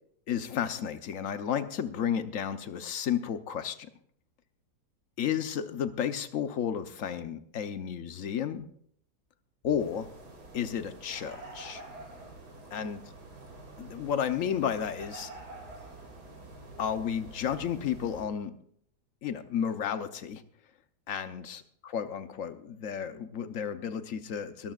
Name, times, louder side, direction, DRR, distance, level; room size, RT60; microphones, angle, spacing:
voice 1, 0.3-3.8 5.2-8.7 9.6-10.1 10.5-11.8 12.7-13.0 13.8-15.3 16.8-18.5 19.2-20.4 21.1-21.6 21.9-24.7, left 8 dB, 55° left, 10 dB, 1.1 m, -32 dB
Desolation Wilderness, 9.8-18.2, right 2 dB, 65° right, 3.1 m, -47 dB
21.5 x 13.5 x 2.4 m, 0.65 s
omnidirectional pair, 1.9 m